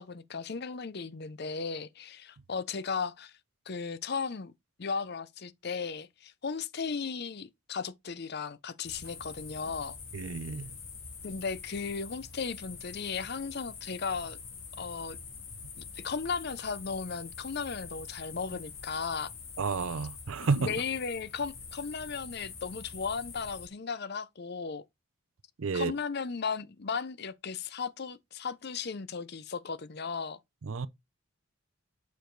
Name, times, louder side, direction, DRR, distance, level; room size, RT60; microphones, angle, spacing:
voice 1, 0.0-3.3 3.7-4.5 4.8-10.0 11.2-14.4 14.8-15.2 15.8-19.3 20.4-24.8 25.7-30.4, left 5 dB, 50° left, 0.6 m, -36 dB
sound 1, 8.8-23.7, left 5 dB, 65° left, 2.8 m, -45 dB
voice 2, 10.1-10.7 19.6-20.8 25.6-25.9 30.6-30.9, right 4 dB, 70° right, 0.6 m, -31 dB
6.9 x 4.7 x 3.9 m
head